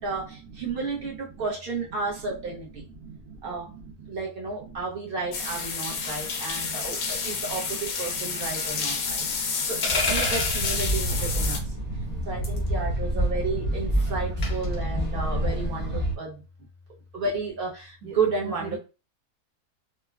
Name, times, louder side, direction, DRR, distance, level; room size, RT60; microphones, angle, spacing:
voice 1, 0.0-2.9 3.4-3.7 4.1-11.6 12.3-16.4 17.1-18.8, right 4 dB, 45° right, -2 dB, 0.8 m, -32 dB
voice 2, 3.0-3.8 5.9-7.1 8.3-9.6 11.0-12.4 13.5-13.6 14.1-14.2 15.2-15.4 15.8-15.9 18.0-18.2 18.4-18.8, right 5 dB, 75° right, 1 dB, 1.1 m, -43 dB
sound 1, 5.3-11.6, left 5 dB, 70° left, 1.0 m, -30 dB
sound 2, 9.8-10.8 12.4-12.7 14.4-14.7, left 2 dB, 45° left, 0.5 m, -28 dB
sound 3, 9.9-16.2, right 1 dB, 10° right, 0.6 m, -28 dB
3.1 x 2.1 x 2.3 m, 0.31 s
omnidirectional pair, 1.6 m